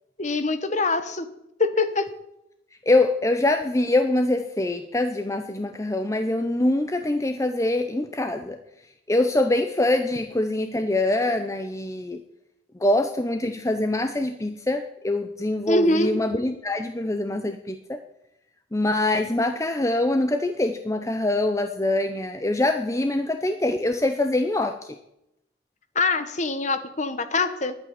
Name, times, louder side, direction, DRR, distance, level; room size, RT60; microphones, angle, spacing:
voice 1, 0.2-1.3 1.6-2.1 15.7-16.1 25.9-27.8, left 3 dB, 35° left, 11 dB, 1.1 m, -24 dB
voice 2, 2.8-8.6 9.1-12.2 12.8-18.0 18.7-24.7, left 2 dB, 15° left, 7 dB, 0.6 m, -24 dB
11.0 x 8.8 x 9.5 m, 0.83 s
head